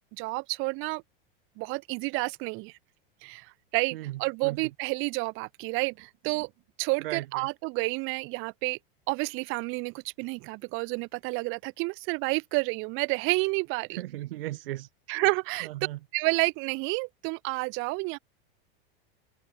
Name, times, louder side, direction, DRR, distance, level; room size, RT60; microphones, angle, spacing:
voice 1, 0.2-1.0 1.6-2.8 3.2-6.5 6.8-8.8 9.1-14.0 15.1-15.7 16.1-18.2, right 27 dB, 45° right, 2.9 m, -30 dB
voice 2, 3.9-4.6 7.0-7.5 13.9-14.9 15.6-16.0, right 16 dB, 75° right, 1.7 m, -37 dB
supercardioid pair, 150°, 29 cm